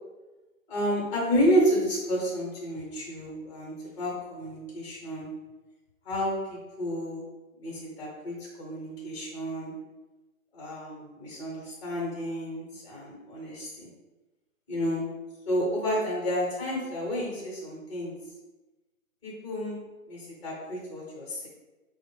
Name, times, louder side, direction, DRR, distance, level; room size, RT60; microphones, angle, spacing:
voice 1, 0.7-5.3 6.0-7.2 7.6-9.7 10.5-13.9 14.7-15.0 15.5-18.1 19.2-19.8 20.1-21.5, equal, 20° left, -4 dB, 0.8 m, -30 dB
4.2 x 2.1 x 3.1 m, 1.1 s
hypercardioid pair, 150°, 42 cm